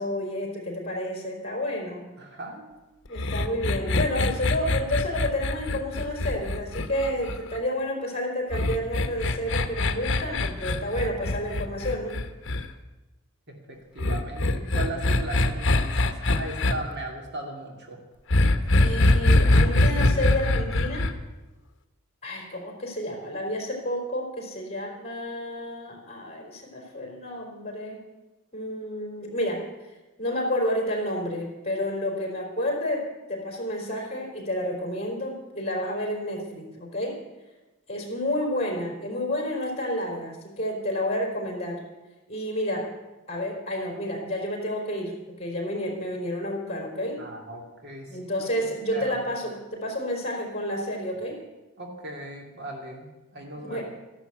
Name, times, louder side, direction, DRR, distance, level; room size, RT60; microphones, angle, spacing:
voice 1, 0.0-2.0 3.1-12.2 18.8-21.1 22.2-28.0 28.5-29.6 30.2-37.2 37.9-41.8 42.3-42.9 43.3-47.2 48.1-51.4 53.6-53.8, left 1 dB, 30° left, 1 dB, 4.1 m, -30 dB
voice 2, 2.2-2.7 13.5-18.0 47.2-49.1 51.8-53.8, right 2 dB, 50° right, 2 dB, 2.6 m, -38 dB
sound 1, 3.2-7.6 8.5-12.6 14.0-16.7 18.3-21.1, left 2 dB, 55° left, 1.1 m, -23 dB
14.0 x 11.0 x 8.0 m, 1.1 s
head